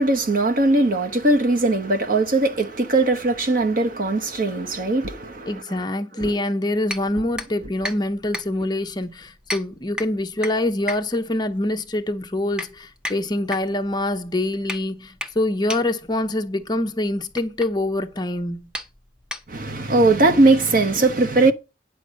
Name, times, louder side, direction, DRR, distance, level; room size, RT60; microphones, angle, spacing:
voice 1, 0.0-5.8 6.2-6.4 19.5-21.5, right 2 dB, 45° right, 1.0 m, -20 dB
voice 2, 5.5-18.6, left 1 dB, 20° left, 0.9 m, -25 dB
sound 1, 6.8-19.9, left 1 dB, 5° right, 0.8 m, -36 dB
9.9 x 6.1 x 5.2 m
head